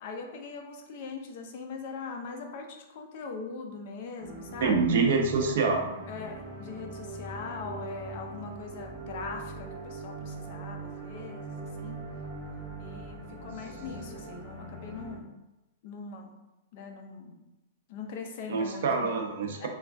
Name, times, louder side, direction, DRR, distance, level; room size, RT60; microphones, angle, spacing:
voice 1, 0.0-5.0 6.1-12.0 12.8-15.3 15.8-16.3 16.7-17.4 17.9-19.3 19.6-19.7, left 4 dB, 40° left, 3 dB, 0.4 m, -41 dB
sound 1, 4.2-15.2, right 2 dB, 15° right, 0.7 m, -41 dB
voice 2, 4.6-5.9 18.5-19.7, right 4 dB, 55° right, 2 dB, 0.5 m, -26 dB
3.2 x 2.3 x 2.4 m, 0.97 s
supercardioid pair, 175°, 0 cm